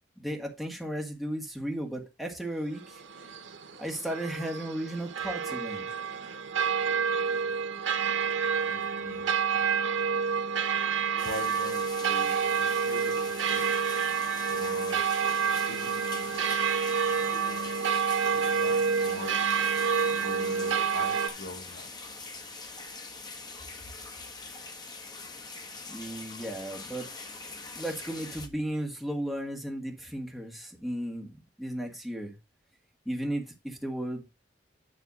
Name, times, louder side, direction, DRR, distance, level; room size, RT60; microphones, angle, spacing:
voice 1, 0.2-3.0 3.8-5.9 25.9-27.1 27.8-32.4 33.1-34.2, right 1 dB, ahead, 1.8 m, -35 dB
sound 1, 2.7-21.3, right 6 dB, 80° right, 1.1 m, -28 dB
voice 2, 8.7-9.3 11.2-13.6 14.5-15.0 15.7-16.5 16.9-17.7 18.3-19.4 20.1-21.9, left 2 dB, 85° left, 2.1 m, -43 dB
sound 2, 11.2-28.5, left 3 dB, 20° left, 1.1 m, -43 dB
9.8 x 3.3 x 6.3 m
head